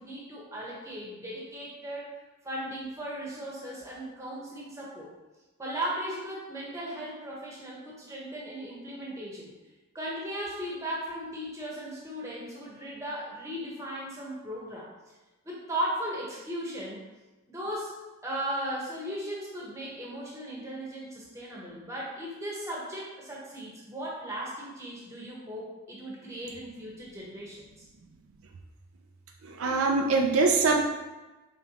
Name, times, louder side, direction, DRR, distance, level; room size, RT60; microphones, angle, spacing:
voice 1, 0.0-2.1 2.4-5.1 5.6-9.5 9.9-14.9 15.4-17.0 17.5-27.9, right 1 dB, 15° right, -5 dB, 1.0 m, -37 dB
voice 2, 29.4-30.9, right 3 dB, 70° right, 2 dB, 0.4 m, -23 dB
5.1 x 3.5 x 2.9 m, 1.1 s
head